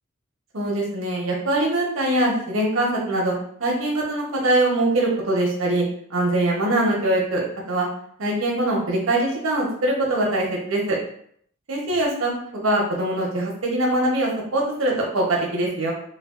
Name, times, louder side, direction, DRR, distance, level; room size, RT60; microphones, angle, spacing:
voice 1, 0.5-3.3 3.6-7.9 8.2-11.0 11.7-15.9, right 1 dB, 90° right, -2 dB, 0.8 m, -23 dB
3.3 x 2.2 x 2.4 m, 0.64 s
head